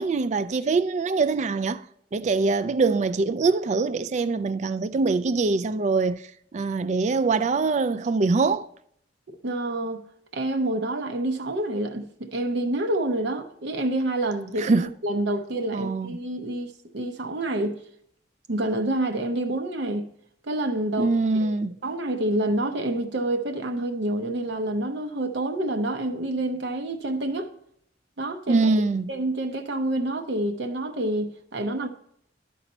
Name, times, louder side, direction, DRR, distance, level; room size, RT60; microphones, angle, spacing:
voice 1, 0.0-1.8 2.1-6.2 6.5-8.7 14.6-14.9 15.7-16.2 21.0-21.8 28.5-29.1, right 3 dB, 40° right, 0.3 m, -23 dB
voice 2, 9.4-10.0 10.3-14.7 15.0-17.8 18.5-20.1 20.4-21.5 21.8-27.5 28.2-28.7 29.1-31.9, right 1 dB, 70° right, 0.7 m, -28 dB
12.0 x 4.1 x 4.2 m
head